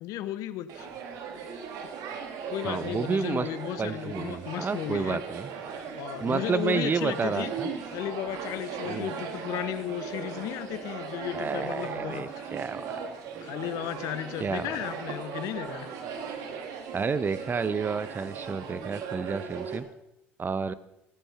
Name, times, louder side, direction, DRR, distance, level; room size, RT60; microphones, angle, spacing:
voice 1, 0.0-0.9 2.5-5.2 5.9-7.5 7.9-12.5 13.4-16.0, left 12 dB, 65° left, 0.9 m, -34 dB
sound 1, 0.7-19.8, right 6 dB, 70° right, 2.0 m, -38 dB
voice 2, 2.6-3.5 3.8-5.5 6.2-7.7 8.8-9.1 11.3-13.0 14.4-14.8 16.9-19.9 20.4-20.7, right 5 dB, 30° right, 0.8 m, -30 dB
16.0 x 10.0 x 5.8 m
hypercardioid pair, 65°, 6 cm